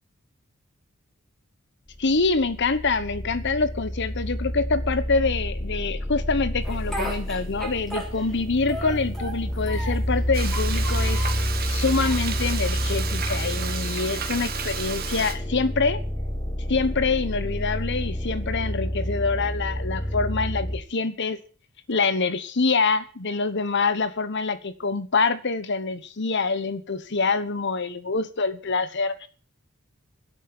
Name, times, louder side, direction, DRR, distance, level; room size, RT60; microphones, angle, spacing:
sound 1, 1.9-20.8, equal, 20° left, 1.8 m, -29 dB
voice 1, 2.0-16.0 16.7-21.4 21.9-29.3, left 4 dB, 55° left, 1.1 m, -25 dB
Speech, 6.6-8.4 8.7-10.1 10.5-11.4 12.0-12.8, equal, ahead, 3.9 m, -35 dB
Frying (food), 10.3-15.3, right 7 dB, 45° right, 2.1 m, -32 dB
10.5 x 8.4 x 8.8 m
head